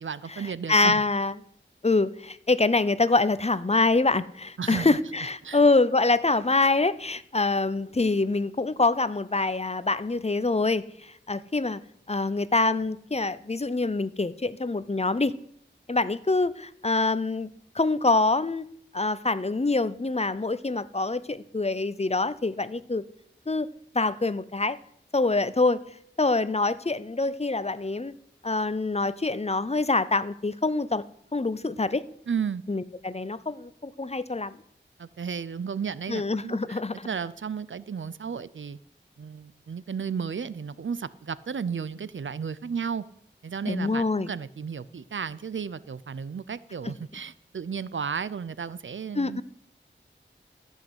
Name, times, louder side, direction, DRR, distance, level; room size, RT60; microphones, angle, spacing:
voice 1, 0.0-1.0 4.6-5.0 5.4-5.6 32.3-32.6 35.0-38.8 39.2-43.0 43.4-49.4, right 6 dB, 85° right, 18 dB, 0.5 m, -33 dB
voice 2, 0.7-1.3 1.8-11.8 12.1-15.3 15.9-17.5 17.7-18.7 18.9-23.0 23.5-23.7 23.9-24.8 25.1-25.8 26.2-28.1 28.4-31.0 31.3-32.0 32.7-34.6 36.1-37.1 43.7-44.3 49.1-49.4, left 3 dB, 35° left, 16 dB, 0.7 m, -25 dB
14.5 x 6.4 x 7.9 m, 0.68 s
wide cardioid pair, 60°, 19 cm